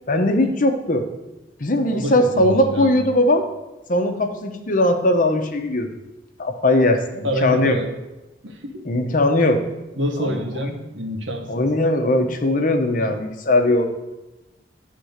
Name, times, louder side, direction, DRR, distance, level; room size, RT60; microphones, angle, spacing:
voice 1, 0.1-1.0 1.6-3.5 3.9-5.9 6.4-7.8 8.8-9.6 10.2-10.4 11.5-13.8, left 1 dB, 45° left, 5 dB, 0.9 m, -19 dB
voice 2, 1.9-2.9 7.2-7.9 8.4-8.8 9.9-11.7, equal, 90° right, 3 dB, 1.2 m, -27 dB
10.5 x 3.7 x 6.5 m, 1.0 s
head